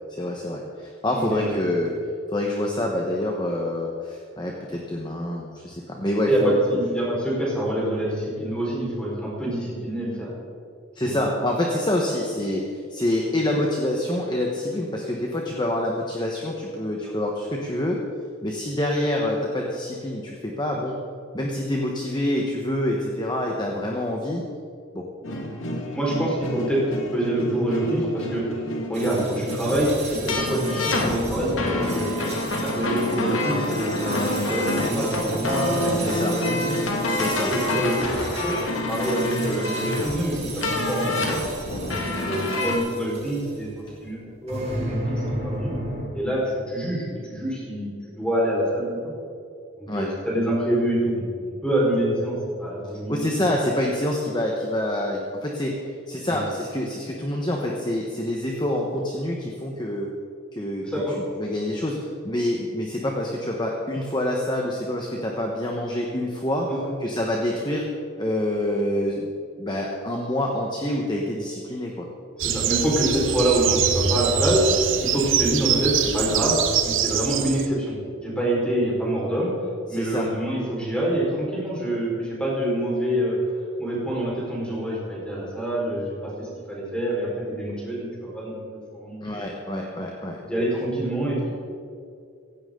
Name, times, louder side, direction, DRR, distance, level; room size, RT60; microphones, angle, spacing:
voice 1, 0.1-1.9 2.3-6.6 11.0-18.0 18.4-21.0 21.3-24.4 24.9-25.0 36.0-36.3 37.1-37.5 49.9-50.1 53.1-55.8 56.1-60.1 60.5-60.9 61.4-62.0 62.2-66.7 67.0-67.8 68.2-69.3 69.6-72.0 79.9-80.3 89.2-90.4, left 1 dB, 20° left, 0 dB, 1.2 m, -26 dB
voice 2, 1.1-1.5 6.2-10.3 11.0-11.1 25.9-26.8 27.1-32.3 32.6-36.7 37.1-38.6 38.9-41.4 42.0-43.7 44.0-45.7 46.1-49.0 49.8-53.5 56.2-56.4 60.8-61.2 66.7-66.9 72.4-76.6 76.8-79.5 79.9-89.2 90.4-91.5, right 1 dB, 5° left, -5 dB, 4.7 m, -26 dB
sound 1, 25.2-42.8, left 1 dB, 70° left, 2.1 m, -27 dB
sound 2, 28.9-43.7 44.5-46.1, right 2 dB, 30° right, 3.0 m, -35 dB
sound 3, 72.4-77.7, right 8 dB, 70° right, 1.1 m, -24 dB
16.5 x 16.5 x 3.9 m, 2.4 s
head